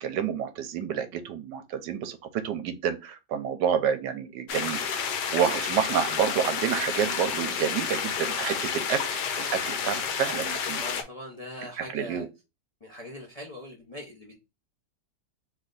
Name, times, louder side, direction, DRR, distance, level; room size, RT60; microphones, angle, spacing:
voice 1, 0.0-10.8 11.8-12.3, right 8 dB, 85° right, 1.3 m, -29 dB
sound 1, 4.5-11.0, left 7 dB, 75° left, 1.2 m, -30 dB
voice 2, 9.7-10.0 10.8-12.2 12.8-14.3, left 1 dB, 35° left, 0.6 m, -41 dB
3.2 x 3.2 x 3.8 m
omnidirectional pair, 1.8 m